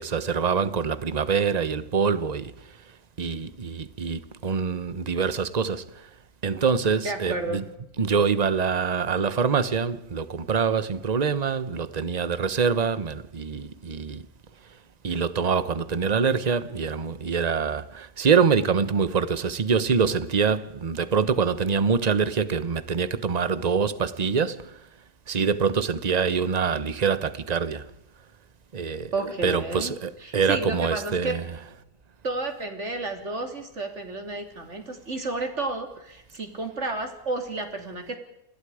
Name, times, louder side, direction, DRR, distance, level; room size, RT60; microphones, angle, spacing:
voice 1, 0.0-2.5 3.2-6.1 6.4-7.6 8.0-14.2 15.0-24.7 25.3-27.9 28.7-29.1 29.4-31.4, right 6 dB, 30° right, 1.0 m, -25 dB
voice 2, 7.0-7.6 29.1-31.4 32.2-38.2, right 3 dB, 45° right, 3.5 m, -31 dB
28.5 x 20.5 x 5.0 m
omnidirectional pair, 1.7 m